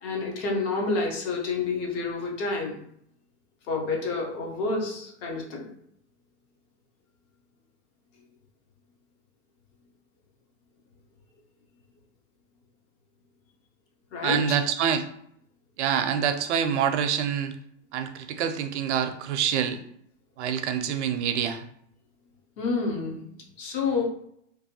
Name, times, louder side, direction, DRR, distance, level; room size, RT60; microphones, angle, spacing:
voice 1, 0.0-2.8 3.6-5.7 8.2-8.3 14.1-14.6 22.6-23.3 23.6-24.0, left 3 dB, 25° left, 0 dB, 0.4 m, -29 dB
voice 2, 14.2-15.1 15.8-17.5 17.9-19.8 20.4-21.6, right 8 dB, 65° right, 8 dB, 0.5 m, -26 dB
2.6 x 2.2 x 2.7 m, 0.70 s
hypercardioid pair, 140°, 37 cm